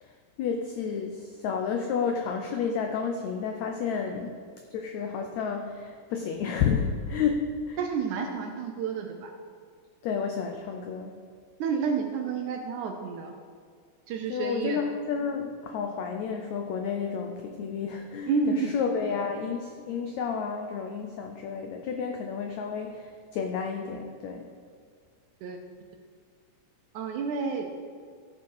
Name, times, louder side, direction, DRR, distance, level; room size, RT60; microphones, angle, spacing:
voice 1, 0.0-4.3 4.7-7.8 10.0-11.2 14.3-24.5, left 6 dB, 85° left, 3 dB, 1.6 m, -31 dB
voice 2, 7.8-9.3 11.6-13.3 14.1-14.8 18.3-18.7 25.4-25.6 26.9-27.7, right 5 dB, 75° right, 4 dB, 1.9 m, -30 dB
14.0 x 6.0 x 4.7 m, 2.1 s
omnidirectional pair, 4.0 m